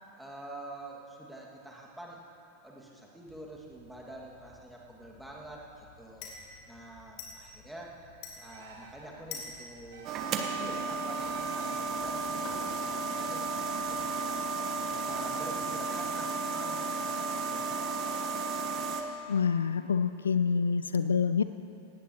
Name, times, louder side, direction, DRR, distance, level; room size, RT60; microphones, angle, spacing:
voice 1, 0.2-2.2 2.6-6.3 6.7-8.0 8.4-10.1 10.5-14.5 14.9-18.5, right 1 dB, ahead, -3 dB, 2.1 m, -46 dB
sound 1, 3.3-16.1, left 4 dB, 45° left, 2.7 m, -51 dB
sound 2, 8.4-9.1 9.9-10.6 11.1-11.9, right 4 dB, 60° right, 1.9 m, -51 dB
sound 3, 10.0-19.0, right 4 dB, 35° right, 1.2 m, -33 dB
voice 2, 19.3-21.4, left 6 dB, 70° left, 12 dB, 0.4 m, -27 dB
19.0 x 17.5 x 3.0 m, 2.8 s
figure-of-eight pair, 90°, 0 cm